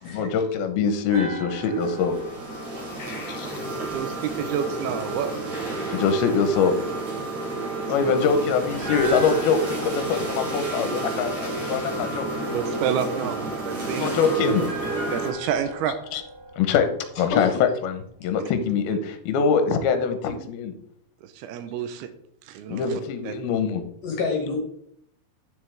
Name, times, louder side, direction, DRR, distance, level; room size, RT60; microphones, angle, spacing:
voice 1, 0.1-2.1 3.3-3.5 5.9-6.7 7.9-12.3 13.9-14.7 16.1-16.2 16.6-16.9 17.2-17.5 17.8-20.7 22.7-23.8, left 5 dB, 80° left, 8 dB, 2.8 m, -23 dB
sound 1, 1.1-4.3 8.7-11.9 14.5-17.8 18.0-18.2, right 2 dB, 70° right, 4.2 m, -38 dB
sound 2, 1.5-15.3, right 2 dB, 50° right, 3.7 m, -31 dB
voice 2, 3.0-3.7 17.3-17.5 24.0-24.6, left 4 dB, 65° left, 1 dB, 2.7 m, -29 dB
voice 3, 3.9-5.8 8.0-8.1 12.5-14.2 15.1-16.0 21.4-22.1 22.5-22.8 23.2-23.3, right 8 dB, 90° right, 9 dB, 2.6 m, -29 dB
9.8 x 7.3 x 3.4 m, 0.67 s
omnidirectional pair, 4.6 m